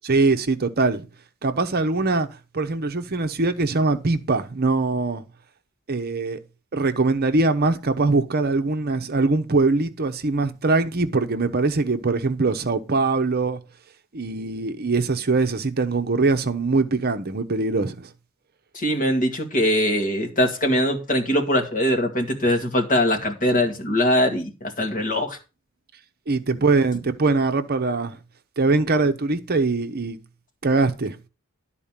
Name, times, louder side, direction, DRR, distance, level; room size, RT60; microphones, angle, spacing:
voice 1, 0.0-1.0 1.4-2.3 2.5-5.2 5.9-6.4 6.7-13.6 14.1-18.1 26.3-28.2 28.6-30.2 30.6-31.2, right 3 dB, 45° right, 0.8 m, -22 dB
voice 2, 18.7-25.4, left 1 dB, 40° left, 2.1 m, -22 dB
12.0 x 4.3 x 7.3 m
head